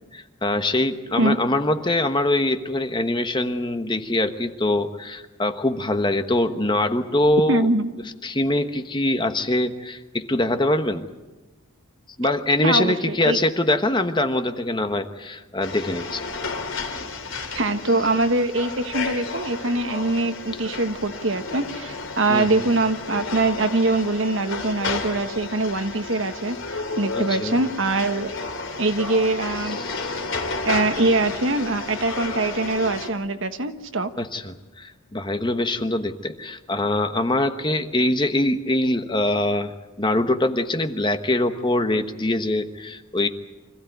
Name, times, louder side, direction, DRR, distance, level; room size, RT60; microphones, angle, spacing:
voice 1, 0.1-7.7 8.2-11.0 12.2-16.2 22.3-22.7 27.1-27.6 29.7-30.4 34.2-43.3, left 1 dB, 20° left, 8 dB, 1.1 m, -23 dB
voice 2, 7.5-7.9 12.6-13.4 17.5-28.3 28.8-29.8 30.6-34.1, right 2 dB, 60° right, 8 dB, 1.4 m, -23 dB
sound 1, 15.6-33.1, left 3 dB, 60° left, 3.3 m, -32 dB
25.5 x 16.0 x 9.3 m, 1.2 s
head